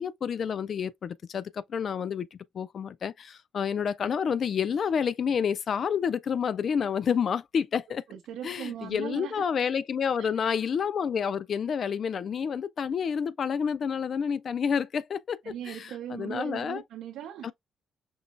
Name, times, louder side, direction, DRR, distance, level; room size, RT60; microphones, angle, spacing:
voice 1, 0.0-8.0 8.4-16.8 17.4-17.5, left 7 dB, 55° left, 0.3 m, -29 dB
voice 2, 7.9-9.4 10.2-10.5 15.4-17.5, right 11 dB, 85° right, 0.6 m, -39 dB
5.4 x 2.9 x 2.5 m
cardioid pair, 90°, 0 cm